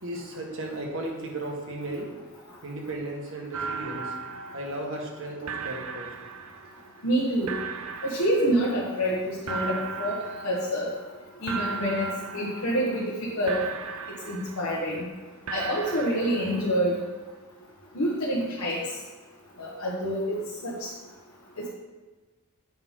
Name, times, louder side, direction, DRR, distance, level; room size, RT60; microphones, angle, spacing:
voice 1, 0.0-2.1 2.6-4.1 4.5-6.1, right 1 dB, 65° right, 0 dB, 1.4 m, -35 dB
sound 1, 3.5-5.2 5.5-7.1 7.5-9.1 9.5-11.2 11.5-13.2 13.5-15.1 15.5-17.1, right 5 dB, 90° right, 0.6 m, -37 dB
voice 2, 7.0-7.5 8.0-10.9 11.4-13.6 14.3-15.1 15.5-17.0 17.9-18.8 19.6-20.7, equal, 90° left, -5 dB, 1.3 m, -27 dB
7.8 x 5.6 x 3.6 m, 1.3 s
head